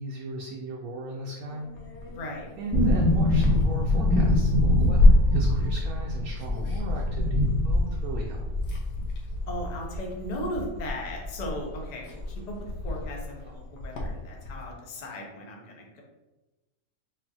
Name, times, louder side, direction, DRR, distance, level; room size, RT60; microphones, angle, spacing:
voice 1, 0.0-1.7 2.6-8.5, right 1 dB, 70° right, -1 dB, 0.9 m, -37 dB
sound 1, 1.5-8.3 8.6-9.4 10.2-10.6 11.1-11.2 11.5-14.6, left 1 dB, 85° left, 1.3 m, -27 dB
voice 2, 2.1-2.5 9.5-12.5 12.8-16.0, left 1 dB, 70° left, -1 dB, 0.4 m, -37 dB
sound 2, 2.7-11.5 11.8-11.9 12.2-13.2 13.5-13.6, left 1 dB, 5° left, 1.0 m, -25 dB
5.2 x 2.4 x 2.7 m, 1.1 s
omnidirectional pair, 1.8 m